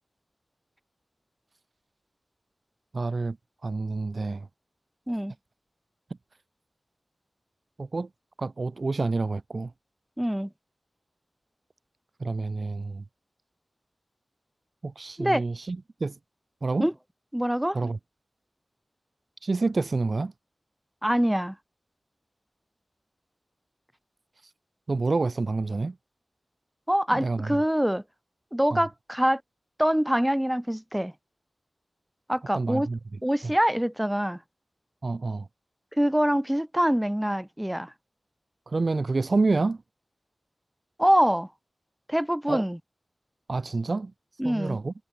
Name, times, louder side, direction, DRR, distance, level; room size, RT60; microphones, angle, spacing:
voice 1, 2.9-3.4 3.6-4.5 7.8-8.1 8.4-9.7 12.2-13.0 14.8-16.1 16.6-16.9 17.7-18.0 19.4-20.3 24.9-25.9 27.1-27.6 28.7-28.8 32.5-33.0 33.4-33.5 35.0-35.5 38.7-39.8 42.5-42.6 43.5-44.1 44.4-44.9, right 3 dB, 50° right, 1.6 m, -28 dB
voice 2, 10.2-10.5 15.2-15.4 16.8-16.9 17.3-17.8 21.0-21.6 26.9-28.0 28.5-29.4 29.8-31.1 32.3-32.9 33.2-34.4 36.0-37.9 41.0-41.5 42.1-42.8 44.4-44.8, equal, 5° right, 2.3 m, -24 dB
wide cardioid pair, 95°, 0 cm